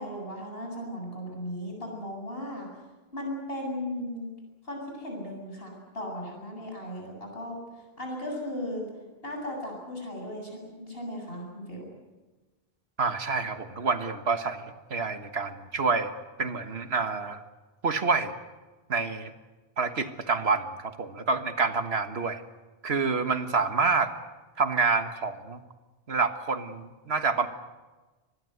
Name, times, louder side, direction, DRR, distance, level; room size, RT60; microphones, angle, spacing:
voice 1, 0.0-2.7 3.1-4.3 4.6-7.6 8.0-8.9 9.2-11.9, left 1 dB, 70° left, 1 dB, 8.2 m, -36 dB
voice 2, 13.0-16.1 16.4-17.4 17.8-18.3 18.9-19.3 19.8-22.4 22.8-24.1 24.6-25.6 26.1-27.5, right 4 dB, 85° right, 9 dB, 1.7 m, -27 dB
24.0 x 21.0 x 8.0 m, 1.2 s
omnidirectional pair, 1.0 m